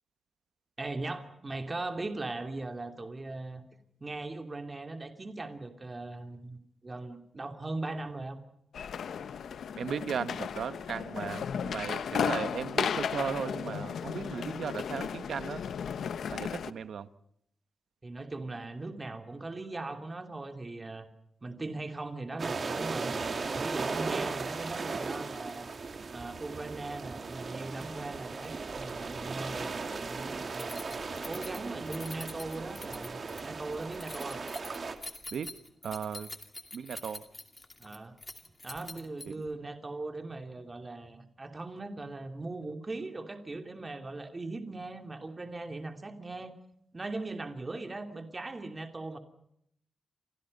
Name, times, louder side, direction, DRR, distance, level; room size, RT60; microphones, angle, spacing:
voice 1, 0.8-3.6 4.0-8.4 18.0-21.1 21.4-23.1 23.4-25.7 26.1-30.8 31.2-34.4 37.8-38.1 38.6-46.5 46.9-49.2, right 2 dB, 25° right, 6 dB, 3.0 m, -39 dB
sound 1, 8.7-16.7, left 7 dB, 80° left, 1.1 m, -34 dB
voice 2, 9.8-15.6 16.3-17.1 35.3-35.5 35.8-36.3 36.7-37.2, right 7 dB, 75° right, 12 dB, 1.4 m, -36 dB
sound 2, 22.4-35.0, right 4 dB, 40° right, 2.8 m, -37 dB
Keys jangling, 30.5-39.5, left 2 dB, 20° left, 2.5 m, -46 dB
29.5 x 26.5 x 5.5 m, 0.71 s
wide cardioid pair, 145°, 0 cm